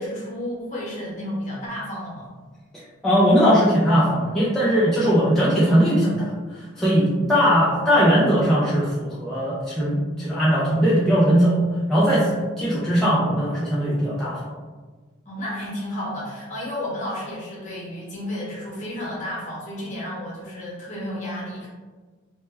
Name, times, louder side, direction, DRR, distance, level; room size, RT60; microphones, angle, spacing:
voice 1, 0.0-2.3 15.2-21.7, left 1 dB, 40° left, -5 dB, 0.8 m, -32 dB
voice 2, 2.7-6.3 6.8-11.6 11.9-14.4, equal, ahead, -9 dB, 0.3 m, -19 dB
2.1 x 2.1 x 3.2 m, 1.4 s
head